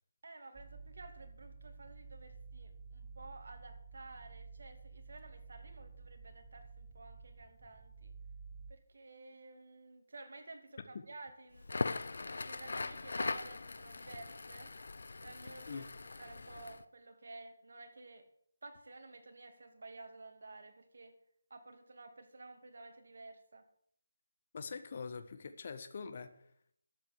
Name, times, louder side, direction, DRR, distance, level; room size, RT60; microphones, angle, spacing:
voice 1, 0.2-8.1 8.7-11.7 12.4-14.7 15.2-15.9 16.2-18.2 18.6-21.1 21.5-23.6, right 2 dB, 65° right, 6 dB, 2.8 m, -53 dB
sound 1, 0.5-8.7, right 4 dB, 10° right, 1.1 m, -52 dB
Crackle, 11.6-16.8, left 3 dB, 70° left, 0.9 m, -40 dB
voice 2, 24.5-26.3, left 5 dB, 40° left, 10 dB, 1.5 m, -43 dB
13.0 x 8.0 x 8.3 m, 0.68 s
figure-of-eight pair, 165°, 0 cm